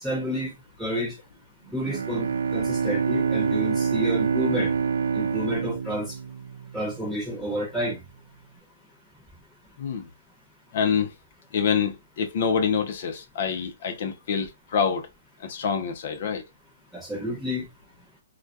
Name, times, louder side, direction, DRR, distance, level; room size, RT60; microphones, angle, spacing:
voice 1, 0.0-0.5 0.8-1.2 1.7-4.7 5.1-6.1 6.7-8.0 16.9-17.6, equal, 5° right, 1.0 m, -30 dB
Bowed string instrument, 1.8-7.0, right 6 dB, 90° right, 0.3 m, -26 dB
voice 2, 9.8-10.1 10.7-11.1 11.5-15.1 15.4-16.4, left 6 dB, 55° left, 0.5 m, -26 dB
2.2 x 2.1 x 2.5 m
hypercardioid pair, 150°, 0 cm